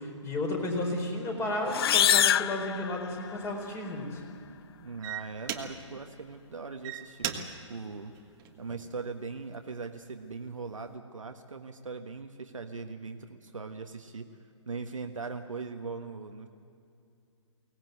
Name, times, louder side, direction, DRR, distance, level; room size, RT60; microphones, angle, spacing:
voice 1, 0.0-4.2, left 2 dB, 15° left, 2 dB, 4.2 m, -33 dB
sound 1, 1.7-3.5, left 10 dB, 50° left, 0.5 m, -25 dB
sound 2, 2.9-3.0 3.6-3.9 4.6-4.7 5.0-6.0 6.6-9.0 9.5-9.9, right 10 dB, 25° right, 1.6 m, -38 dB
voice 2, 4.8-8.1 8.6-14.3 14.7-16.5, right 4 dB, 90° right, 5 dB, 1.4 m, -40 dB
23.0 x 18.0 x 8.0 m, 2.5 s
hypercardioid pair, 140°, 16 cm